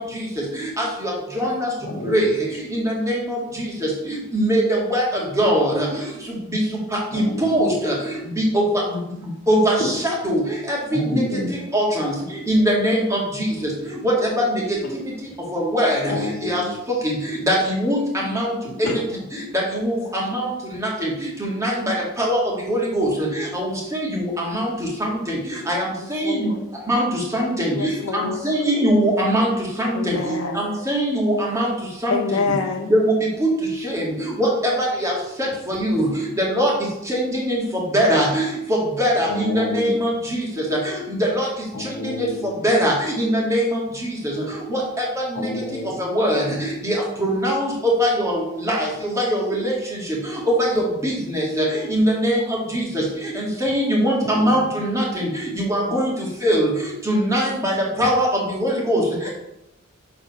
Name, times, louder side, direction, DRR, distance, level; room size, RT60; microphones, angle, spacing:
voice 1, 0.8-1.7 2.0-2.3 2.7-3.4 4.1-5.0 5.4-5.9 6.5-6.6 7.1-7.9 8.4-8.6 8.9-9.0 9.5-10.4 10.7-11.1 11.7-12.1 12.5-13.5 14.0-14.8 15.5-16.1 16.4-16.6 17.0-17.1 17.5-18.5 18.8-18.9 19.7-20.5 20.8-21.1 21.4-22.4 22.6-24.7 25.0-25.4 25.7-25.8 26.1-26.5 26.9-29.5 29.8-31.7 32.0-32.2 32.9-33.1 33.4-33.5 33.8-34.1 34.4-35.1 35.4-36.1 36.5-36.7 37.1-37.6 37.9-38.4 39.0-40.4 40.7-40.8 41.2-41.5 42.2-42.3 42.6-44.3 44.7-44.8 46.0-46.5 46.8-48.9 49.2-49.7 50.5-52.4 52.7-53.0 53.4-55.3 55.5-56.1 56.4-56.7 57.1-57.7 58.0-59.0, equal, 15° right, -3 dB, 1.8 m, -21 dB
voice 2, 1.8-2.2 7.1-7.6 9.8-9.9 10.9-11.5 16.1-16.7 18.8-18.9 39.3-40.0 41.7-42.5 45.3-45.9 54.2-54.5, left 1 dB, 70° left, -3 dB, 1.7 m, -28 dB
voice 3, 26.0-26.6 27.7-28.4 29.9-30.7 32.1-32.9, left 4 dB, 90° left, 1 dB, 0.7 m, -26 dB
6.9 x 3.9 x 5.3 m, 0.84 s
head